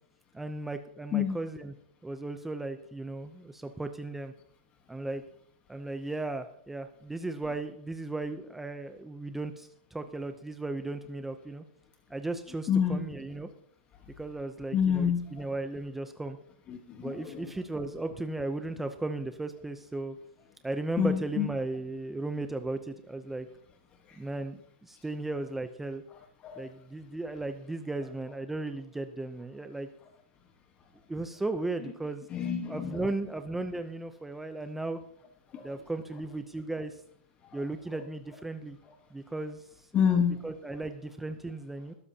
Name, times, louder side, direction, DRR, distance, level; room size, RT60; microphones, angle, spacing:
voice 1, 0.3-1.7 2.0-4.3 4.9-5.2 5.7-11.6 12.1-13.5 14.2-16.4 17.0-20.2 20.6-23.5 24.2-26.0 26.6-29.9 31.1-32.2 32.7-35.0 35.6-37.0 37.5-38.8 39.1-39.9 40.4-41.9, right 2 dB, 5° right, 8 dB, 0.6 m, -36 dB
voice 2, 12.7-13.0 14.7-15.5 16.7-17.5 21.0-21.5 26.4-26.6 32.3-33.0 35.5-35.6 37.4-37.6 39.9-40.4, left 7 dB, 20° left, 4 dB, 1.3 m, -28 dB
20.5 x 13.0 x 2.8 m, 0.67 s
hypercardioid pair, 160°, 6 cm